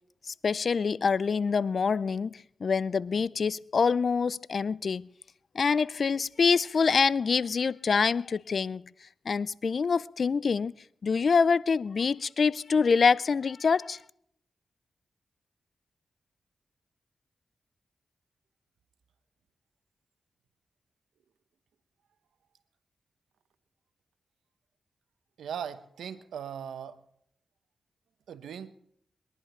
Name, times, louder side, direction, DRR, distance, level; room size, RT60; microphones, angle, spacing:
voice 1, 0.3-5.1 5.5-8.9 9.3-10.7 11.0-14.0, left 5 dB, 65° left, 0.4 m, -26 dB
voice 2, 25.4-27.0 28.3-28.7, right 8 dB, 85° right, 0.9 m, -39 dB
21.5 x 11.0 x 4.4 m
supercardioid pair, 40°, 0 cm